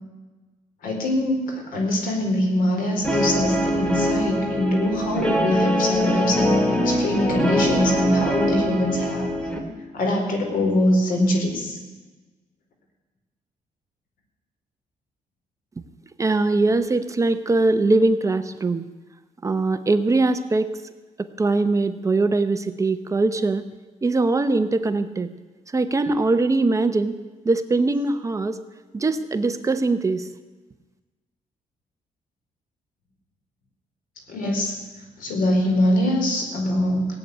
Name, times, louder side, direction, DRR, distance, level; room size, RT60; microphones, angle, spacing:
voice 1, 0.8-9.3 9.9-11.8 34.3-34.8 35.2-37.2, left 1 dB, 80° left, 2 dB, 4.4 m, -23 dB
Guitar, 3.0-9.6, equal, 5° left, 2.3 m, -23 dB
voice 2, 16.2-18.8 19.4-20.8 21.2-23.6 24.0-25.3 25.7-27.2 27.4-28.6 28.9-30.3, right 3 dB, 20° right, 10 dB, 0.8 m, -21 dB
17.5 x 8.6 x 9.6 m, 1.2 s
cardioid pair, 140°, 14 cm